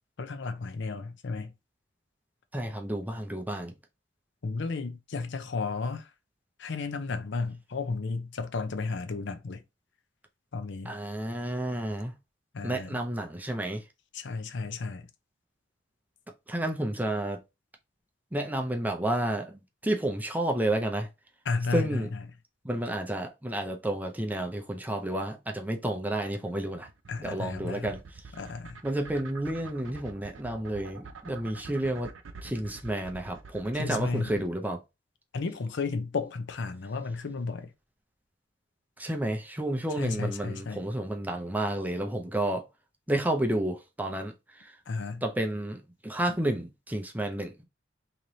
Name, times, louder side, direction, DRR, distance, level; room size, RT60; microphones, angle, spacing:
voice 1, 0.2-1.5 4.4-6.1 6.6-9.6 10.5-10.9 12.5-13.0 14.1-15.1 21.5-22.1 27.1-27.9 28.4-28.8 33.8-34.4 35.3-37.7 40.0-40.8 44.9-45.2, left 4 dB, 65° left, 0.6 m, -33 dB
voice 2, 2.5-3.7 10.9-12.1 12.6-13.8 16.5-17.4 18.3-21.1 21.7-22.1 22.6-26.9 27.2-28.0 28.8-32.1 32.4-34.8 39.0-42.6 43.1-44.7 45.2-47.7, right 1 dB, 10° right, 0.6 m, -31 dB
sound 1, 26.2-34.5, right 5 dB, 85° right, 0.6 m, -46 dB
3.2 x 2.9 x 3.9 m
head